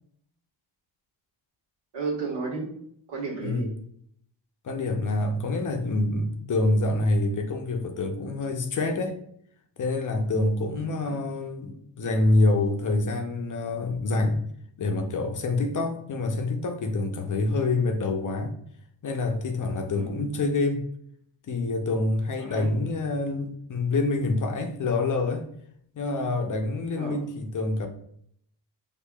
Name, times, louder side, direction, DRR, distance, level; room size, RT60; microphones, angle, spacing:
voice 1, 1.9-2.7 3.1-3.7 11.0-11.2 19.9-20.1 22.4-22.7 26.9-27.2, right 4 dB, 60° right, 1.5 m, -32 dB
voice 2, 4.6-9.2 9.8-14.4 14.8-18.5 19.0-20.8 21.5-25.5 25.9-27.9, left 2 dB, 40° left, 0.6 m, -26 dB
4.6 x 2.4 x 2.3 m
cardioid pair, 60°, 47 cm